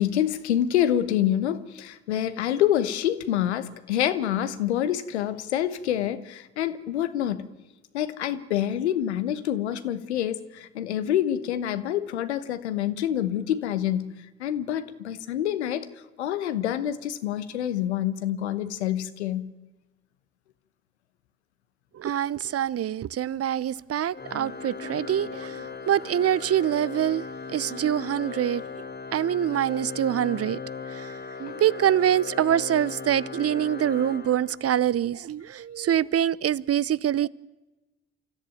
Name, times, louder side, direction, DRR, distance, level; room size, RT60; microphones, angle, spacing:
voice 1, 0.0-7.5 7.9-14.1 14.4-15.9 16.2-19.5 31.5-31.6, left 11 dB, 90° left, 1.0 m, -27 dB
voice 2, 21.9-27.2 27.5-28.6 29.1-30.6 30.9-37.3, right 10 dB, 45° right, 0.7 m, -25 dB
Organ, 24.1-34.9, left 5 dB, 30° left, 2.0 m, -38 dB
27.0 x 14.0 x 9.1 m
hypercardioid pair, 45°, 32 cm